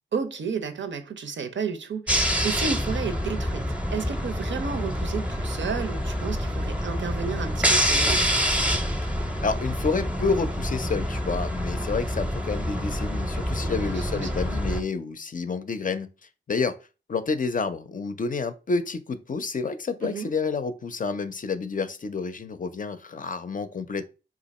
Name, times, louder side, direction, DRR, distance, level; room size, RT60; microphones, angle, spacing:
voice 1, 0.1-3.6 3.9-8.2 13.6-14.5 20.0-20.3, right 5 dB, 75° right, 0.5 m, -32 dB
sound 1, 2.1-14.8, equal, 5° right, 0.6 m, -27 dB
voice 2, 9.4-16.1 16.5-16.7 17.1-24.0, left 4 dB, 45° left, 0.5 m, -29 dB
2.8 x 2.4 x 4.1 m
cardioid pair, 45°, 19 cm